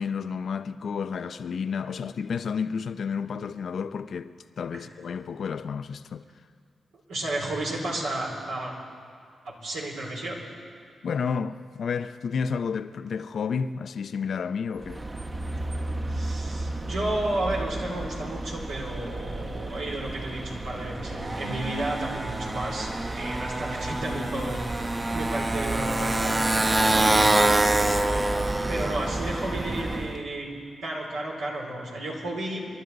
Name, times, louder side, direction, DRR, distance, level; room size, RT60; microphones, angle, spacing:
voice 1, 0.0-6.2 11.0-15.0, left 6 dB, 70° left, 0.5 m, -31 dB
voice 2, 7.1-8.7 9.4-10.4 16.1-26.4 26.8-27.5 28.6-30.5 30.8-32.7, right 1 dB, 90° right, 3.3 m, -32 dB
Motorcycle, 14.8-30.2, right 2 dB, 30° right, 0.9 m, -27 dB
27.0 x 12.0 x 4.0 m
supercardioid pair, 45°, 0 cm